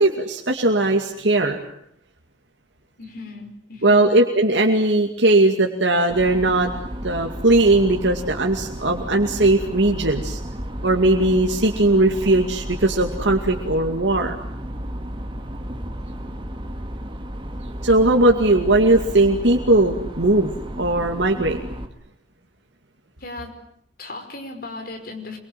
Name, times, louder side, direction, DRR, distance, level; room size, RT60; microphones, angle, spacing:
voice 1, 0.0-1.6 3.8-6.7 7.0-10.4 10.8-14.3 17.8-21.6, right 2 dB, 85° right, 2 dB, 2.4 m, -18 dB
voice 2, 3.0-4.2 23.2-23.6 24.0-25.4, left 2 dB, 55° left, 5 dB, 5.4 m, -36 dB
sound 1, 6.1-21.9, equal, 30° right, 2.2 m, -33 dB
26.0 x 23.5 x 9.2 m, 0.69 s
head